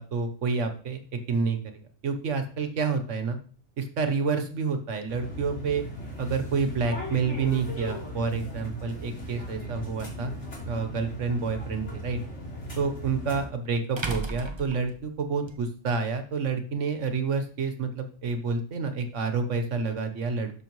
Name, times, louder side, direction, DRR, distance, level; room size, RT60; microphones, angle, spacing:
voice 1, 0.0-3.4 3.8-5.8 6.2-10.3 10.7-12.2 12.8-20.5, right 5 dB, 90° right, 8 dB, 1.5 m, -29 dB
sound 1, 5.1-13.5, equal, 75° left, 3.9 m, -37 dB
sound 2, 10.1-10.2 12.8-12.9 14.0-15.6, right 3 dB, 25° right, 0.9 m, -34 dB
12.5 x 6.2 x 3.1 m, 0.42 s
omnidirectional pair, 1.2 m